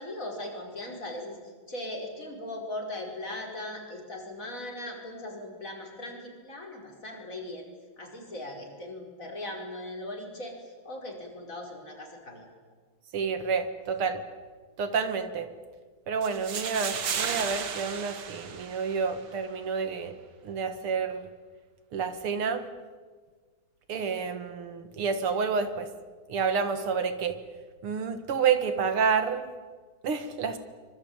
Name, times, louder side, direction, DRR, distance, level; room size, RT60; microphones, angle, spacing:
voice 1, 0.0-7.7 8.0-12.5, left 1 dB, 35° left, 0 dB, 5.4 m, -39 dB
voice 2, 13.1-14.2 14.8-15.5 16.1-20.1 20.4-21.3 21.9-22.6 23.9-25.9 26.3-27.4 27.8-29.5 30.0-30.6, right 6 dB, 80° right, 9 dB, 2.6 m, -29 dB
sound 1, 16.2-19.2, right 7 dB, 55° right, 2.0 m, -34 dB
25.5 x 23.5 x 8.9 m, 1.5 s
omnidirectional pair, 2.4 m